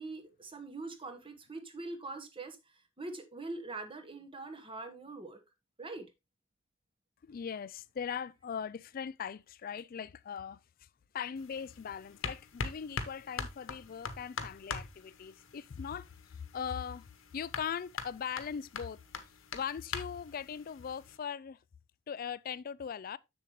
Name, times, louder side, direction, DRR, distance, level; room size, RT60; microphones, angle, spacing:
voice 1, 0.0-2.6 3.0-5.4 5.8-6.1, right 3 dB, 25° right, 1.3 m, -43 dB
voice 2, 7.2-10.6 11.1-17.1 17.3-19.0 19.5-21.6 22.1-23.2, left 7 dB, 45° left, 0.4 m, -40 dB
sound 1, 11.4-21.2, left 5 dB, 75° left, 1.1 m, -43 dB
7.1 x 7.1 x 3.1 m
head